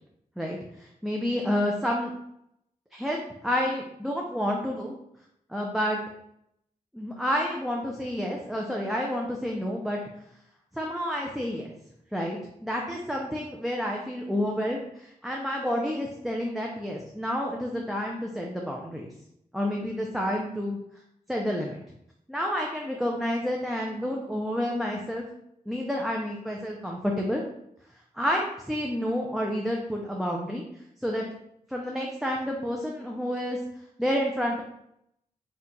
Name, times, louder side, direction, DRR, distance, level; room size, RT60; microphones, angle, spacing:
voice 1, 0.4-2.1 2.9-3.2 3.4-4.9 5.5-6.0 6.9-10.0 10.7-11.7 12.1-19.1 19.5-20.8 21.3-21.8 22.3-25.2 25.7-27.4 28.1-30.6 31.0-31.2 31.7-33.6 34.0-34.6, equal, ahead, -1 dB, 0.5 m, -29 dB
4.4 x 2.4 x 4.0 m, 0.76 s
wide cardioid pair, 85°, 14 cm